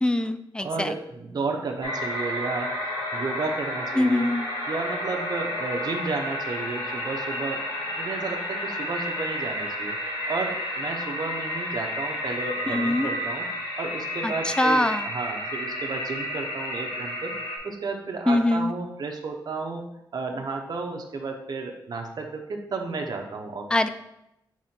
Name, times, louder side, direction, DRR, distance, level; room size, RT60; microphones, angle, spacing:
voice 1, 0.0-0.9 4.0-4.5 12.7-13.1 14.2-14.3 14.6-15.0 18.3-18.7 23.7-23.9, left 1 dB, 10° left, 11 dB, 0.3 m, -23 dB
voice 2, 0.6-4.3 4.7-7.6 8.0-17.3 17.6-19.8 20.1-23.7, right 4 dB, 55° right, 2 dB, 0.7 m, -32 dB
sound 1, 1.8-17.6, left 1 dB, 80° left, 1.6 m, -31 dB
6.2 x 3.7 x 4.3 m, 0.84 s
wide cardioid pair, 110°, 8 cm